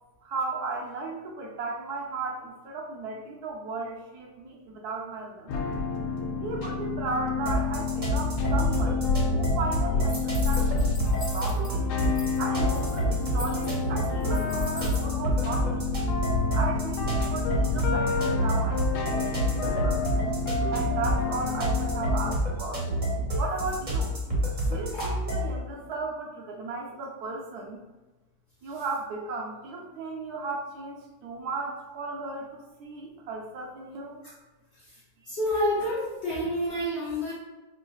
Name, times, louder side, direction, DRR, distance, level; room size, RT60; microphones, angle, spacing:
voice 1, 0.2-5.6 6.4-9.0 9.4-11.0 11.3-11.9 12.4-16.1 16.5-20.0 20.7-22.9 23.3-24.1 24.6-27.8 28.6-34.2, right 3 dB, 75° right, 0 dB, 1.1 m, -35 dB
sound 1, 5.5-22.4, left 3 dB, 75° left, 1.1 m, -29 dB
sound 2, 7.5-25.6, equal, 35° right, 0.8 m, -29 dB
sound 3, 10.1-11.7 12.0-12.4 12.6-15.0, left 2 dB, 40° left, 0.4 m, -42 dB
voice 2, 35.3-37.3, equal, 55° left, -7 dB, 0.8 m, -28 dB
4.5 x 2.5 x 2.3 m, 1.1 s
omnidirectional pair, 1.8 m